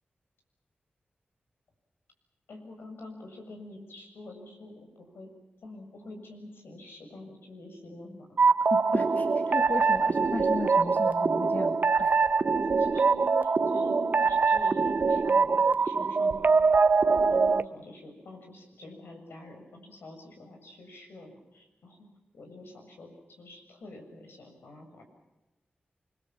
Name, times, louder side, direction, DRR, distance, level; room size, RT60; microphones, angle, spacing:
voice 1, 2.5-5.3 5.6-8.4 12.6-16.8 17.3-22.1 22.3-25.0, left 1 dB, 85° left, 3 dB, 7.2 m, -47 dB
sound 1, 8.4-17.6, right 4 dB, 55° right, 1.0 m, -24 dB
voice 2, 8.7-12.1, left 3 dB, 50° left, 4 dB, 2.4 m, -36 dB
29.0 x 22.5 x 7.6 m, 1.0 s
cardioid pair, 65°, 4 cm